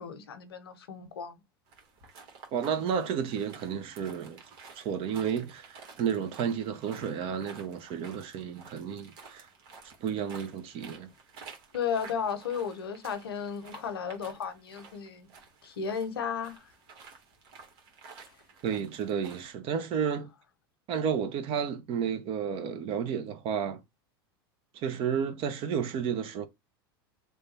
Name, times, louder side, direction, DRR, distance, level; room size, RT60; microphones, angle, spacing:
voice 1, 0.0-1.4 11.7-15.3 15.6-16.6, left 7 dB, 90° left, 0.7 m, -34 dB
sound 1, 1.7-19.5, right 5 dB, 65° right, 1.3 m, -52 dB
voice 2, 2.5-4.4 4.8-9.5 10.0-11.1 18.6-20.3 20.9-23.8 24.8-26.5, right 7 dB, 50° right, 0.6 m, -32 dB
3.2 x 2.2 x 4.0 m
hypercardioid pair, 95°, 12 cm